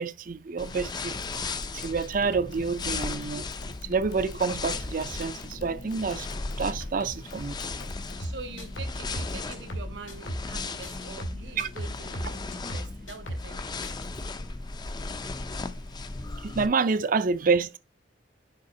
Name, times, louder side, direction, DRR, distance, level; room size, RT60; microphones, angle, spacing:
voice 1, 0.0-1.5 1.7-3.5 3.8-6.3 6.6-7.6 11.6-11.7 16.4-17.8, right 4 dB, 45° right, 0.5 m, -28 dB
sound 1, 0.6-16.7, left 3 dB, 20° left, 0.4 m, -36 dB
sound 2, 1.1-8.3, left 1 dB, 60° left, 1.3 m, -45 dB
sound 3, 8.2-10.5 10.8-13.5 13.8-14.1, equal, 85° left, 2.2 m, -36 dB
voice 2, 8.2-13.6, right 3 dB, 65° right, 1.1 m, -44 dB
6.6 x 4.5 x 3.8 m
head